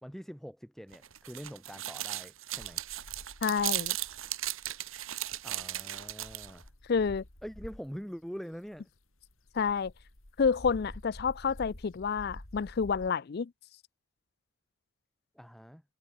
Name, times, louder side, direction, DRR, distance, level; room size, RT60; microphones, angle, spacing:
voice 1, 0.0-2.8 5.4-6.7 7.4-8.9 15.3-15.8, equal, ahead, 2.1 m, -44 dB
sound 1, 0.9-6.6, right 14 dB, 75° right, 2.1 m, -36 dB
sound 2, 2.6-8.0 8.5-13.1, left 1 dB, 75° left, 3.3 m, -50 dB
voice 2, 3.4-4.0 6.9-7.2 9.5-9.9 10.4-13.5, left 5 dB, 50° left, 0.4 m, -29 dB
head